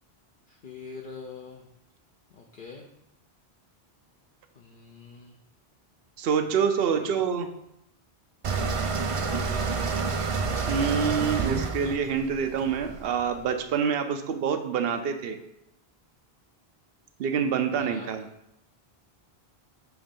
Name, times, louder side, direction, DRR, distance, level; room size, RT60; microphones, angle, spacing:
voice 1, 0.5-1.7 2.3-2.9 4.5-5.4 6.9-7.2 9.3-9.9 17.7-18.1, left 5 dB, 60° left, 0 dB, 0.7 m, -44 dB
voice 2, 6.2-7.5 10.7-15.4 17.2-18.2, right 7 dB, 70° right, 8 dB, 0.8 m, -26 dB
sound 1, 8.4-13.4, right 4 dB, 45° right, 0.4 m, -29 dB
5.9 x 3.1 x 5.2 m, 0.80 s
omnidirectional pair, 1.1 m